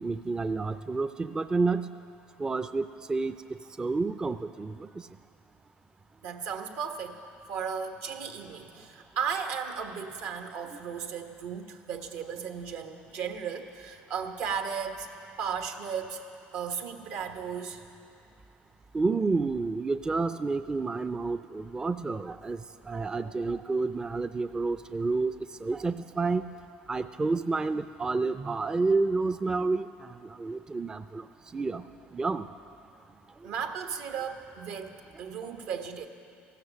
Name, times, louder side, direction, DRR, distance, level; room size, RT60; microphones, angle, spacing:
voice 1, 0.0-1.9 2.4-3.3 3.8-5.1 18.9-22.6 22.9-25.3 25.6-26.5 26.9-31.2 31.5-31.8 32.1-32.4, right 3 dB, 20° right, 11 dB, 0.4 m, -29 dB
voice 2, 6.2-7.2 7.5-15.1 15.4-16.2 16.5-17.8 33.4-36.1, right 7 dB, 75° right, 6 dB, 1.3 m, -35 dB
15.0 x 12.5 x 7.3 m, 2.6 s
supercardioid pair, 100°, 4 cm